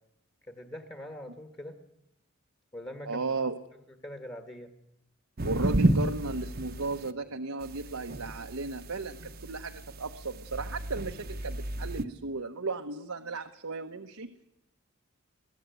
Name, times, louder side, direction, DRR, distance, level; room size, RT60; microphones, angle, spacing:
voice 1, 0.5-1.8 2.7-3.2 4.0-4.7 9.2-9.3, left 1 dB, 20° left, 6 dB, 1.7 m, -42 dB
voice 2, 3.0-3.6 5.4-14.3, right 3 dB, 85° right, 6 dB, 1.1 m, -35 dB
sound 1, 5.4-7.1 7.6-12.0, right 1 dB, 45° right, 1.0 m, -31 dB
22.0 x 15.0 x 9.2 m, 0.85 s
head